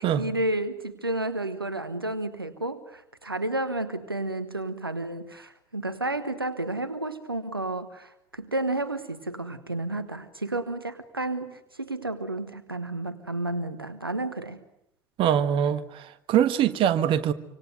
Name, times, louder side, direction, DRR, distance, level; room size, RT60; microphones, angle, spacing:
voice 1, 0.0-14.6, right 2 dB, 85° right, 1.1 m, -31 dB
voice 2, 15.2-15.8 16.3-17.3, right 10 dB, 50° right, 1.5 m, -22 dB
26.0 x 25.5 x 8.0 m
figure-of-eight pair, 60°, 12 cm